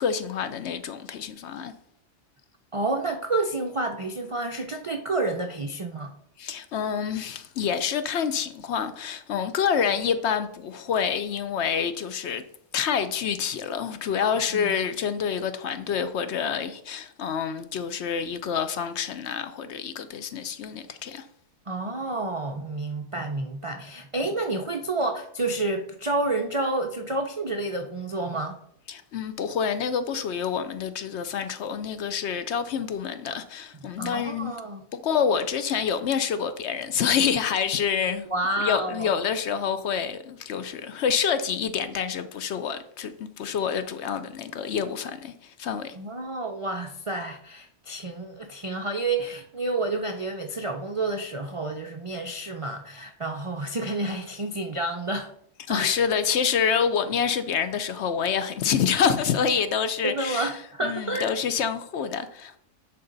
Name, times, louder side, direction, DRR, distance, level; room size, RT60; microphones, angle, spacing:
voice 1, 0.0-1.8 6.4-12.4 12.7-21.3 28.9-34.6 34.9-38.3 38.6-46.0 55.7-60.5 60.8-62.6, left 7 dB, 65° left, 0.8 m, -27 dB
voice 2, 2.7-6.1 14.5-14.8 21.7-28.6 34.0-34.8 38.3-39.1 45.9-55.3 55.7-55.9 60.0-61.3, right 2 dB, 50° right, 0.4 m, -29 dB
10.0 x 4.1 x 3.9 m
omnidirectional pair, 1.3 m